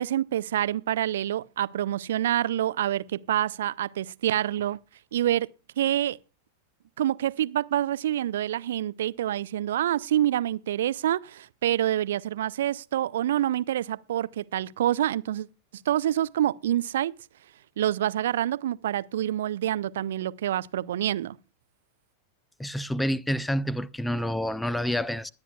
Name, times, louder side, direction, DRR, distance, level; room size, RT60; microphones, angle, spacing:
voice 1, 0.0-4.8 5.1-5.5 5.8-6.2 7.0-15.5 15.9-17.1 17.8-21.4, right 12 dB, 60° right, 0.5 m, -27 dB
voice 2, 22.6-25.3, equal, 5° left, 0.5 m, -28 dB
21.0 x 9.6 x 2.3 m
figure-of-eight pair, 90°, 0 cm